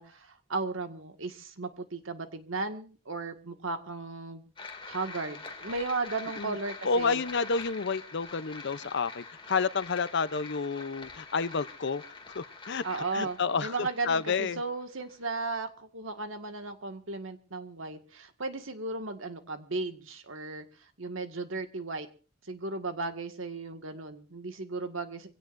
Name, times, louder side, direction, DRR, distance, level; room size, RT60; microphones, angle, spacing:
voice 1, 0.0-4.5 4.8-7.2 12.8-20.6 21.0-22.1 22.5-25.3, right 3 dB, 80° right, 7 dB, 1.9 m, -35 dB
sound 1, 4.6-15.5, left 4 dB, 25° left, 2.5 m, -45 dB
voice 2, 6.8-12.0 12.3-12.8 13.1-14.6, left 5 dB, 60° left, 15 dB, 0.7 m, -30 dB
25.0 x 17.0 x 2.6 m, 0.37 s
head